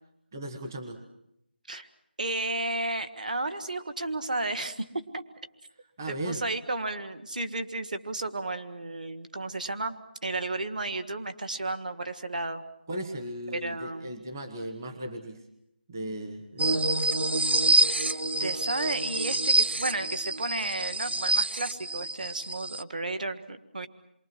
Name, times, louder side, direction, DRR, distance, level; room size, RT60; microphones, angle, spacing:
voice 1, 0.3-1.0 6.0-6.4 12.9-15.4 15.9-16.9, right 1 dB, 20° right, 5 dB, 1.3 m, -37 dB
voice 2, 2.2-4.9 5.1-5.2 6.1-10.0 10.2-12.6 13.5-14.1 18.0-23.9, right 2 dB, 50° right, 9 dB, 1.7 m, -33 dB
sound 1, 16.6-22.8, right 2 dB, 85° right, 0.9 m, -26 dB
28.0 x 23.0 x 6.2 m, 0.78 s
figure-of-eight pair, 180°, 6 cm